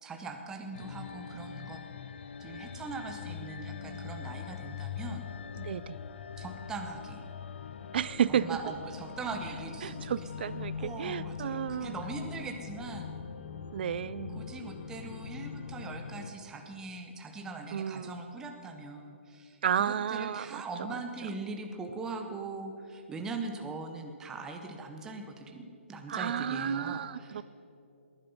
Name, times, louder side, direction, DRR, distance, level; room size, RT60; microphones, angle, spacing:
voice 1, 0.0-1.8 2.4-5.3 6.4-7.3 8.3-13.1 14.3-27.4, right 3 dB, 10° right, 4 dB, 0.8 m, -41 dB
sound 1, 0.7-16.3, left 7 dB, 55° left, 0.7 m, -42 dB
voice 2, 5.6-6.0 7.9-8.6 9.8-11.9 13.7-14.5 17.7-18.2 19.6-20.6 26.1-27.4, right 9 dB, 50° right, 17 dB, 0.5 m, -32 dB
19.5 x 11.5 x 5.5 m, 2.7 s
hypercardioid pair, 165°, 7 cm